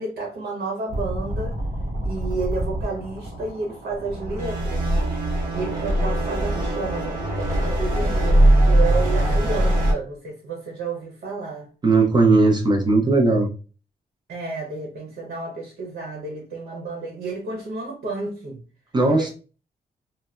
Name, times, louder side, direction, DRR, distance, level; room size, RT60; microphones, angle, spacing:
voice 1, 0.0-1.5 2.0-4.9 5.5-11.7 14.3-18.6 19.1-19.3, right 3 dB, 85° right, 0.9 m, -31 dB
sound 1, 0.9-9.9, right 1 dB, 60° right, 1.0 m, -22 dB
voice 2, 11.8-13.5 18.9-19.3, right 3 dB, 30° right, 0.5 m, -17 dB
3.2 x 2.1 x 2.4 m
wide cardioid pair, 165°, 16 cm